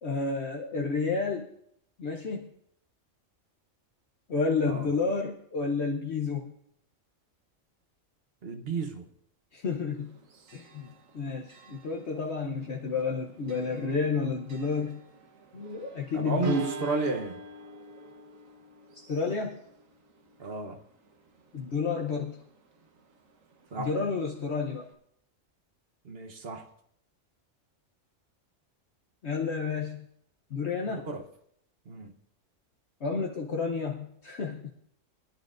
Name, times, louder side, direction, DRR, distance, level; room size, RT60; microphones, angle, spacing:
voice 1, 0.0-1.5 2.0-2.5 4.3-6.5 9.5-10.1 10.5-15.0 15.5-16.7 19.1-19.6 21.5-22.4 23.8-24.9 29.2-30.0 30.5-31.1 33.0-34.7, left 4 dB, 60° left, 0 dB, 1.2 m, -30 dB
voice 2, 8.4-9.0 16.1-17.4 20.4-20.8 23.7-23.9 26.0-26.6 30.9-31.2 31.9-32.1, right 3 dB, 50° right, 5 dB, 1.2 m, -32 dB
Church bell, 9.9-24.9, right 3 dB, 85° right, 1.5 m, -48 dB
22.0 x 11.0 x 2.6 m, 0.70 s
omnidirectional pair, 1.3 m